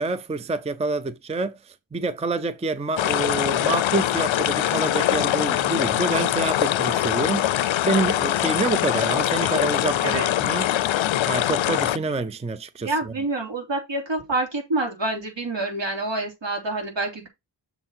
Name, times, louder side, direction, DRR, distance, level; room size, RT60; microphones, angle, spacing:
voice 1, 0.0-10.7 11.3-13.1, right 3 dB, 15° right, 0.5 m, -27 dB
sound 1, 3.0-12.0, left 12 dB, 75° left, 0.5 m, -23 dB
voice 2, 12.8-17.3, right 2 dB, 70° right, 3.4 m, -27 dB
6.8 x 4.4 x 5.6 m
wide cardioid pair, 140°, 46 cm